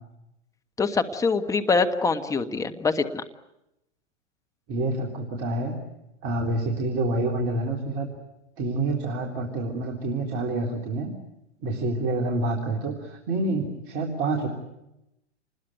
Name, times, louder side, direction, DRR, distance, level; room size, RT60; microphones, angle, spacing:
voice 1, 0.8-3.2, left 4 dB, 10° left, 8 dB, 1.4 m, -24 dB
voice 2, 4.7-5.8 6.2-8.1 8.6-11.1 11.6-14.5, right 2 dB, 40° right, 1 dB, 3.9 m, -27 dB
28.0 x 21.0 x 9.2 m, 0.88 s
hypercardioid pair, 115°, 35 cm